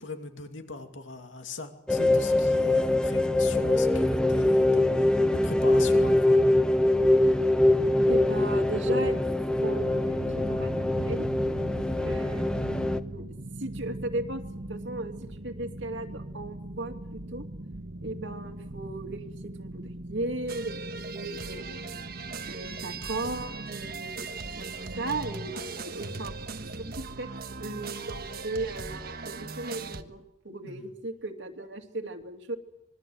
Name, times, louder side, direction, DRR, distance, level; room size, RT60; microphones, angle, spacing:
voice 1, 0.0-6.4 11.8-12.0 30.6-30.9, left 3 dB, 90° left, 5 dB, 2.7 m, -41 dB
sound 1, 1.9-13.0, left 1 dB, 5° left, 1.0 m, -23 dB
voice 2, 8.1-9.2 9.6-10.2 10.5-11.3 12.0-13.3 13.6-17.4 18.0-21.8 22.5-24.3 24.6-24.7 25.0-26.3 27.2-27.3 27.6-32.6, right 2 dB, 70° right, 4 dB, 2.8 m, -36 dB
sound 2, 9.8-29.0, right 1 dB, 90° right, 1.4 m, -42 dB
sound 3, 20.5-30.0, right 4 dB, 55° right, 1.4 m, -39 dB
26.0 x 22.5 x 7.9 m, 0.81 s
head